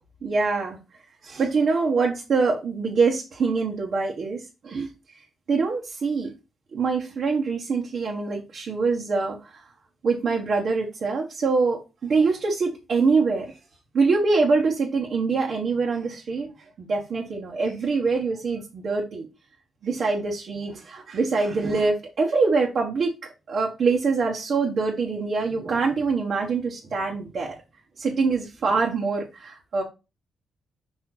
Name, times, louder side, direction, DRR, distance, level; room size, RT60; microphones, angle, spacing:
voice 1, 0.2-0.8 1.2-4.9 5.5-6.3 6.7-9.6 10.0-13.6 13.9-16.5 16.8-19.3 19.8-23.1 23.5-27.5 28.0-29.8, right 4 dB, 55° right, -2 dB, 1.4 m, -24 dB
5.5 x 4.5 x 3.9 m, 0.28 s
cardioid pair, 95°, 0 cm